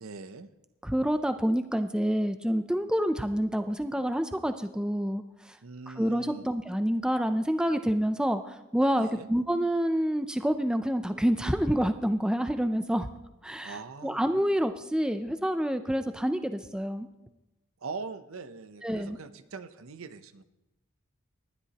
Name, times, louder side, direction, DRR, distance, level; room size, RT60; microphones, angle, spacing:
voice 1, 0.0-0.5 5.6-6.5 9.0-9.3 13.6-14.2 17.8-20.4, right 4 dB, 80° right, 12 dB, 0.7 m, -42 dB
voice 2, 0.8-5.6 5.9-13.1 13.4-17.1 18.8-19.2, equal, 5° right, 8 dB, 0.4 m, -28 dB
19.5 x 11.0 x 2.9 m, 0.97 s
head